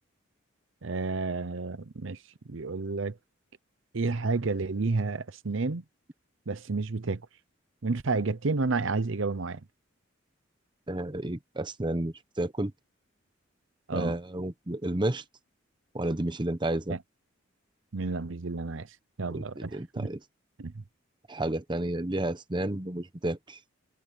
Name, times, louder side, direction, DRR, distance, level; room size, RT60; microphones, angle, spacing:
voice 1, 0.8-2.2 2.5-3.2 3.9-5.8 6.5-7.2 7.8-9.6 13.9-14.2 16.9-17.0 17.9-18.9 19.2-20.1 20.6-20.7, right 3 dB, 70° right, 0.8 m, -30 dB
voice 2, 10.9-12.7 13.9-15.2 15.9-17.0 19.3-20.2 21.3-23.6, right 1 dB, 25° right, 0.9 m, -31 dB
head